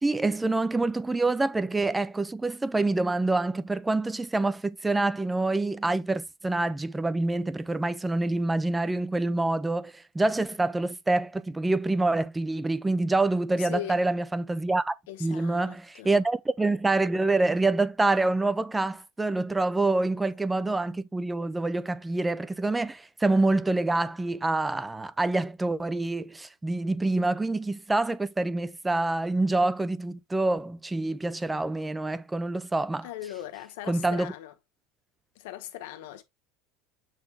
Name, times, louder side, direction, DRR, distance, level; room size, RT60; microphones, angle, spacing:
voice 1, 0.0-14.9 15.2-33.1 33.9-34.3, right 2 dB, 5° right, 0.4 m, -26 dB
voice 2, 13.5-14.1 15.1-16.2 33.0-34.5 35.3-36.2, left 13 dB, 80° left, 1.2 m, -39 dB
7.6 x 4.0 x 3.4 m
cardioid pair, 165°, 0 cm